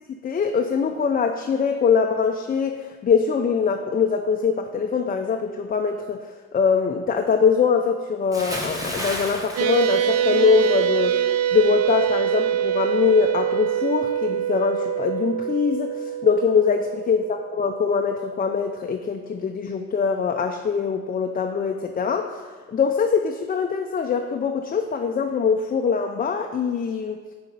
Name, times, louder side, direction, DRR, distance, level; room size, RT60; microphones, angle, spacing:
voice 1, 0.2-6.3 6.5-27.2, left 6 dB, 30° left, 4 dB, 0.4 m, -23 dB
Bathtub (filling or washing) / Splash splatter, 8.3-10.7 11.0-11.3, equal, 10° right, 1.2 m, -32 dB
sound 1, 9.6-18.3, right 10 dB, 55° right, 0.5 m, -24 dB
6.0 x 4.3 x 5.3 m, 1.4 s
cardioid pair, 90°, 30 cm